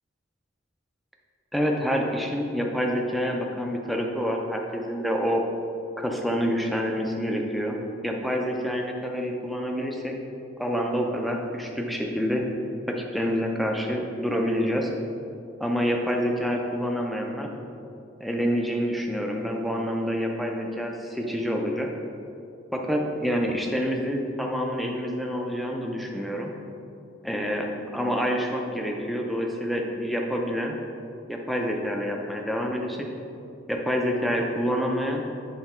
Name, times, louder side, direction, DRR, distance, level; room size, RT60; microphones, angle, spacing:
voice 1, 1.5-5.4 6.0-7.8 8.0-10.1 10.6-12.4 12.9-14.9 15.6-17.5 18.2-21.9 22.7-26.5 27.3-27.7 27.9-30.8 31.3-33.1 33.7-35.2, equal, ahead, 1 dB, 0.5 m, -27 dB
7.9 x 3.4 x 4.3 m, 2.7 s
head